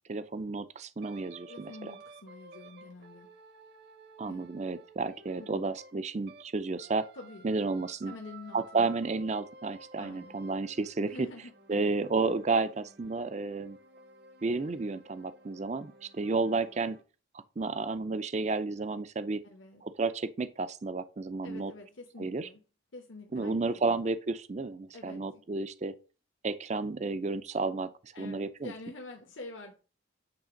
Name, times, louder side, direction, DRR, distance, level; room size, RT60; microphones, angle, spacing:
voice 1, 0.1-1.9 4.2-7.1 7.4-8.1 8.5-11.3 11.7-13.8 14.4-17.0 17.6-19.4 19.8-21.7 22.2-22.5 23.3-25.9 26.4-27.9 28.2-28.7, right 3 dB, 35° right, 0.4 m, -32 dB
sound 1, 1.0-6.5 6.8-17.0, right 3 dB, 50° right, 0.8 m, -54 dB
voice 2, 1.5-3.3 4.3-4.5 5.4-5.7 7.1-7.5 8.1-9.0 10.0-10.4 11.0-11.9 19.4-19.8 21.4-22.6 22.9-24.0 24.9-25.4 28.1-29.7, left 2 dB, 70° left, 1.1 m, -47 dB
8.8 x 3.4 x 5.1 m
head